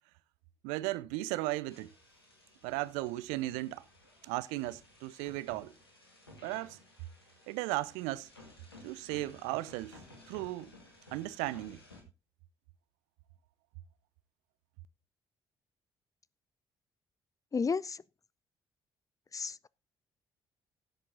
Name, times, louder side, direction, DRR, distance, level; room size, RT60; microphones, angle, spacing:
voice 1, 0.6-1.9 2.6-3.8 4.2-5.7 6.4-6.8 7.5-8.3 8.8-10.0 10.3-10.7 11.1-11.8, right 18 dB, 70° right, 0.5 m, -36 dB
sound 1, 1.7-12.0, left 2 dB, 90° left, 2.3 m, -56 dB
voice 2, 17.5-18.0 19.3-19.7, left 5 dB, 25° left, 0.5 m, -32 dB
16.5 x 7.5 x 3.9 m
figure-of-eight pair, 45°, 12 cm